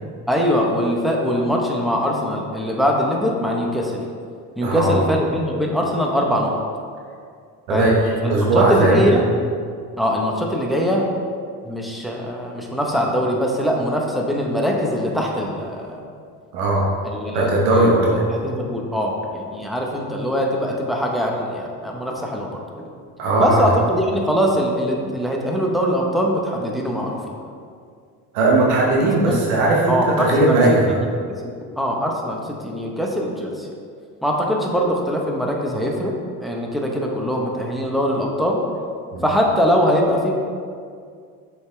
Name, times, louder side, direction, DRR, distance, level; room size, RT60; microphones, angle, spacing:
voice 1, 0.3-4.0 4.6-6.5 7.7-7.9 8.2-9.2 10.0-11.1 11.6-16.0 17.2-17.9 18.4-22.5 23.4-27.2 29.2-29.4 29.9-30.8 31.3-33.7 34.2-38.6 39.2-40.3, equal, ahead, -1 dB, 1.1 m, -22 dB
voice 2, 4.6-5.1 7.7-9.1 16.5-16.9 17.3-18.2 23.2-23.6 28.3-30.9 39.1-39.2, right 2 dB, 80° right, -3 dB, 1.2 m, -18 dB
6.4 x 5.1 x 3.4 m, 2.2 s
supercardioid pair, 70°, 45 cm